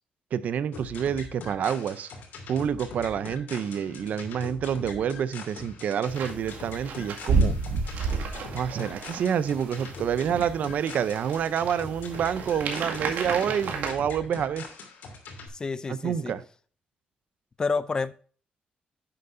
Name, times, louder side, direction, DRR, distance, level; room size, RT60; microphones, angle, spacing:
voice 1, 0.3-2.1 2.5-7.5 8.5-14.6 15.9-16.4, right 8 dB, 60° right, 0.6 m, -28 dB
sound 1, 0.7-15.5, left 4 dB, 80° left, 2.8 m, -42 dB
sound 2, 6.1-13.9, right 4 dB, 90° right, 2.0 m, -31 dB
voice 2, 15.5-16.3 17.6-18.1, left 4 dB, 25° left, 0.4 m, -29 dB
11.0 x 7.8 x 2.6 m
wide cardioid pair, 160°, 3 cm